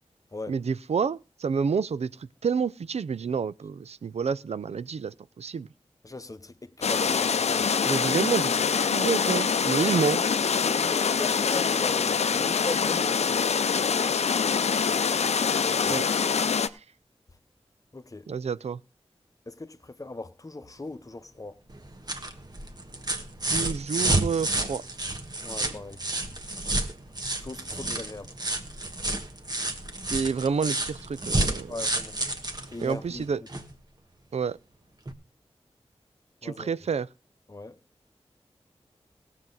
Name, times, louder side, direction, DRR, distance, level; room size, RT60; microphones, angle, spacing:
voice 1, 0.5-2.1 2.4-5.7 7.8-10.2 15.9-16.0 18.3-18.8 23.5-24.8 30.1-31.7 32.8-33.4 34.3-34.6 36.4-37.1, right 6 dB, 80° right, 0.5 m, -29 dB
voice 2, 6.0-7.7 9.8-10.1 10.5-13.4 15.7-16.0 17.9-18.3 19.5-21.6 25.4-26.2 27.4-28.3 31.7-32.2 32.7-33.3 36.4-36.7 37.5-37.8, left 2 dB, 30° left, 0.9 m, -39 dB
sound 1, 6.8-16.7, left 6 dB, 90° left, 0.5 m, -25 dB
sound 2, 21.7-33.7 35.1-35.2, right 2 dB, 40° right, 1.4 m, -30 dB
17.0 x 7.5 x 4.0 m
wide cardioid pair, 60°, 11 cm